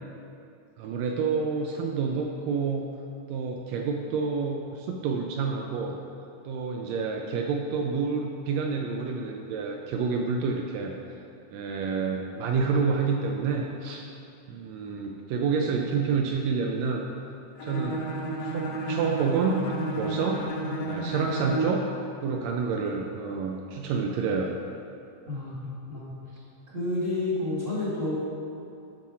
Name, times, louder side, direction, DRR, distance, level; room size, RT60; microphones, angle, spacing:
voice 1, 0.8-2.9 3.3-5.9 6.4-11.2 11.5-14.1 14.5-17.0 17.6-18.1 18.4-19.6 19.9-20.5 20.9-21.9 22.2-24.5, right 5 dB, 85° right, 1 dB, 1.5 m, -28 dB
Bowed string instrument, 17.6-21.8, right 2 dB, 65° left, 2.3 m, -31 dB
voice 2, 25.3-26.1 26.7-28.1, left 2 dB, 25° right, -8 dB, 1.2 m, -30 dB
11.5 x 4.3 x 4.8 m, 2.6 s
omnidirectional pair, 3.6 m